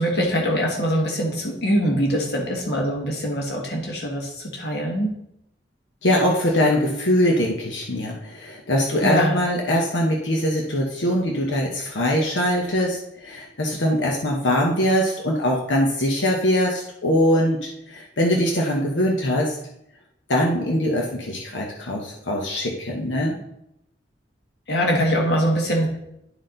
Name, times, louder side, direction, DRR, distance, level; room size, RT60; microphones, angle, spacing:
voice 1, 0.0-5.1 9.0-9.4 24.7-26.0, equal, 60° left, 0 dB, 1.6 m, -23 dB
voice 2, 6.0-19.6 20.3-23.4, equal, 90° left, -1 dB, 1.1 m, -22 dB
11.0 x 4.3 x 3.9 m, 0.80 s
head